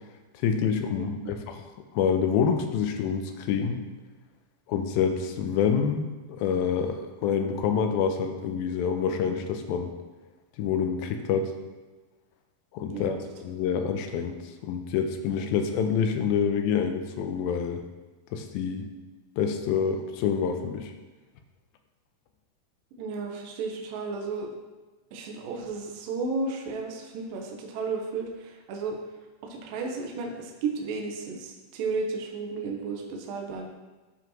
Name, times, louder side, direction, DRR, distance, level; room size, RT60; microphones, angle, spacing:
voice 1, 0.4-1.6 1.9-3.8 4.7-9.9 10.6-11.5 12.7-17.8 18.3-18.9 19.4-20.9, left 7 dB, 80° left, 6 dB, 2.4 m, -27 dB
voice 2, 1.0-1.4 12.9-13.2 23.0-24.5 25.1-29.0 29.4-33.7, right 4 dB, 75° right, 1 dB, 2.4 m, -33 dB
13.0 x 5.0 x 3.0 m, 1.2 s
omnidirectional pair, 4.4 m